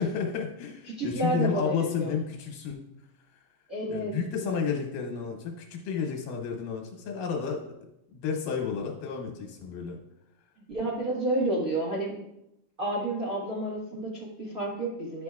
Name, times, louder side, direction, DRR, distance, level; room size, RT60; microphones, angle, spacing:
voice 1, 0.0-2.9 3.9-7.6 8.1-10.0, left 6 dB, 75° left, 1 dB, 2.6 m, -31 dB
voice 2, 1.0-2.1 3.7-4.1 10.7-12.2 12.8-15.2, right 2 dB, 60° right, -7 dB, 0.9 m, -30 dB
10.5 x 6.1 x 2.3 m, 0.84 s
omnidirectional pair, 3.9 m